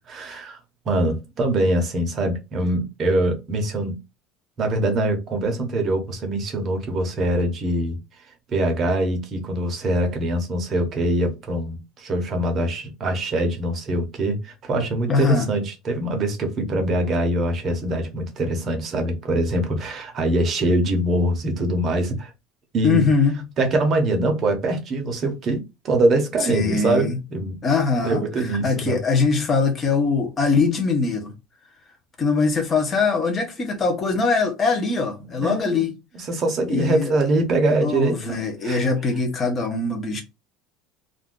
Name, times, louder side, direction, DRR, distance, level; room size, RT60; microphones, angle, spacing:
voice 1, 0.1-0.6 0.9-4.0 4.6-8.0 8.5-22.3 22.7-23.1 23.6-27.6 28.0-29.0 35.4-35.9 36.1-38.8, right 1 dB, 30° right, 0.7 m, -23 dB
voice 2, 15.1-15.5 22.8-23.4 26.4-27.2 27.6-31.3 32.2-35.9 36.7-37.2 37.8-40.2, left 4 dB, 20° left, 0.6 m, -22 dB
2.5 x 2.2 x 3.6 m
cardioid pair, 175°, 0 cm